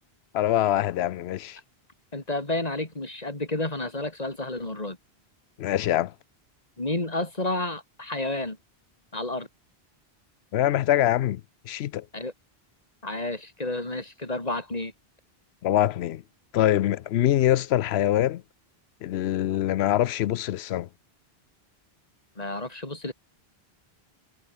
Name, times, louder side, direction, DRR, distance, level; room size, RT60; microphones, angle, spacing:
voice 1, 0.3-1.6 5.6-6.1 10.5-12.1 15.6-16.2 16.5-18.4 19.0-20.9, left 12 dB, 80° left, 0.8 m, -24 dB
voice 2, 2.1-5.0 6.8-8.6 9.1-9.5 12.1-12.3 13.0-14.9 22.4-23.1, left 2 dB, 40° left, 3.5 m, -31 dB
omnidirectional pair, 1.1 m